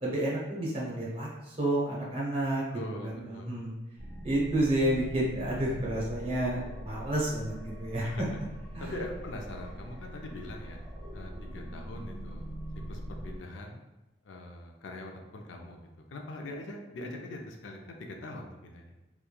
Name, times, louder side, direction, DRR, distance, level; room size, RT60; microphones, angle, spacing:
voice 1, 0.0-2.6 3.0-3.7 4.2-8.2 8.7-9.0, right 1 dB, 30° right, -5 dB, 0.6 m, -30 dB
voice 2, 2.7-3.6 8.0-8.4 8.8-10.8 11.1-12.5 12.9-13.8 14.2-18.8, left 1 dB, 85° left, 2 dB, 0.4 m, -42 dB
sound 1, 4.0-13.4, right 1 dB, 10° left, 1.1 m, -42 dB
2.9 x 2.2 x 2.2 m, 1.0 s
head